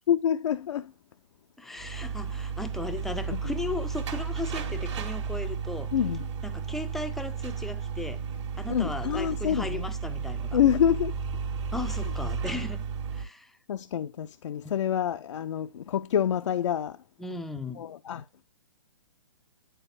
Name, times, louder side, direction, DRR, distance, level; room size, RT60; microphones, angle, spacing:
voice 1, 0.1-0.9 1.7-2.1 3.3-3.4 5.9-6.3 8.7-9.9 10.5-11.1 13.7-17.0 17.8-18.2, left 9 dB, 65° left, 0.4 m, -27 dB
voice 2, 1.6-5.9 6.4-8.2 8.6-10.6 11.7-12.8 13.1-13.6 14.6-14.7 17.2-17.9, left 3 dB, ahead, 0.4 m, -36 dB
sound 1, 1.8-13.2, right 6 dB, 60° right, 1.5 m, -33 dB
10.0 x 3.9 x 2.5 m
hypercardioid pair, 130°, 17 cm